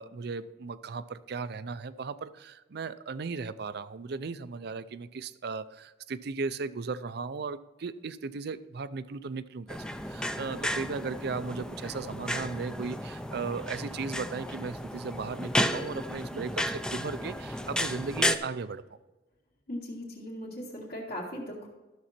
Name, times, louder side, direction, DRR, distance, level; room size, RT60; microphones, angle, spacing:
voice 1, 0.0-18.8, right 4 dB, 60° right, 15 dB, 0.5 m, -36 dB
sound 1, 9.7-18.4, left 1 dB, 5° left, 0.4 m, -33 dB
voice 2, 19.7-21.7, equal, 60° left, -8 dB, 2.2 m, -38 dB
12.5 x 7.0 x 4.3 m, 1.2 s
head